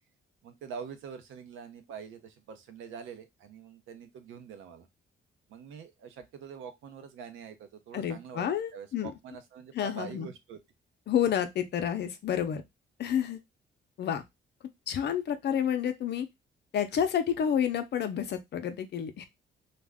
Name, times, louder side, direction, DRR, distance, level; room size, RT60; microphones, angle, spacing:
voice 1, 0.4-4.9 5.5-10.6, right 6 dB, 80° right, 0.7 m, -45 dB
voice 2, 7.9-9.1 9.7-10.3 11.1-12.6 13.0-13.4 14.0-14.2 14.9-16.3 16.7-19.2, left 9 dB, 60° left, 0.5 m, -29 dB
2.4 x 2.1 x 3.4 m
cardioid pair, 90°, 20 cm